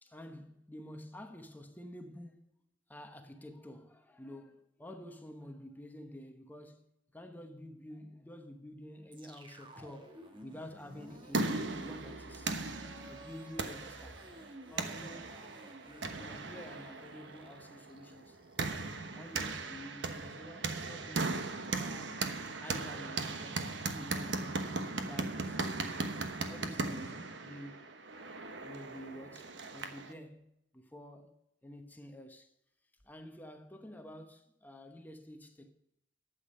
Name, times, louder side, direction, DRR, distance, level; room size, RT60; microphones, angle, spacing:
voice 1, 0.0-2.4 2.9-14.3 14.7-15.3 15.8-18.8 19.1-21.4 21.7-22.2 22.6-24.6 25.0-25.9 26.4-28.0 28.6-30.5 30.7-31.4 31.6-32.5 33.0-35.7, left 1 dB, 10° left, 1.0 m, -50 dB
sound 1, 9.1-19.3, right 1 dB, 25° right, 1.3 m, -54 dB
sound 2, 10.9-30.1, right 3 dB, 70° right, 1.1 m, -38 dB
12.0 x 8.4 x 5.5 m
head